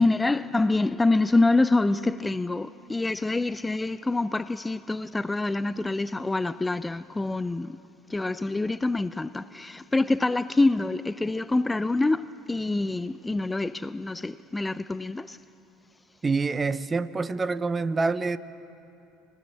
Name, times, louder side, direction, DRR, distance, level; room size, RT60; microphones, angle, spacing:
voice 1, 0.0-7.8 8.1-15.4, left 2 dB, 15° left, 0.5 m, -26 dB
voice 2, 16.2-18.4, right 4 dB, 25° right, 0.8 m, -26 dB
26.0 x 16.5 x 8.5 m
hypercardioid pair, 65°, 0 cm